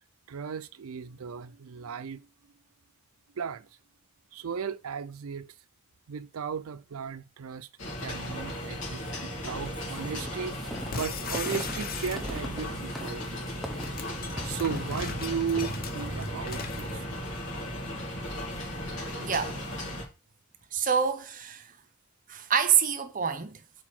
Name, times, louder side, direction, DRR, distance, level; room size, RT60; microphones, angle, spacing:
voice 1, 0.3-2.3 3.3-3.7 4.3-5.5 6.1-7.7 8.0-13.8 14.4-17.2, right 6 dB, 85° right, 0.5 m, -36 dB
sound 1, 7.8-20.0, equal, 65° left, 2.7 m, -36 dB
sound 2, 8.9-16.8, equal, ahead, 0.8 m, -43 dB
sound 3, 10.9-12.6 13.6-16.9, left 5 dB, 45° left, 0.7 m, -38 dB
voice 2, 19.2-19.6 20.7-21.7 22.3-23.6, right 7 dB, 40° right, 0.7 m, -27 dB
4.7 x 4.5 x 5.9 m
head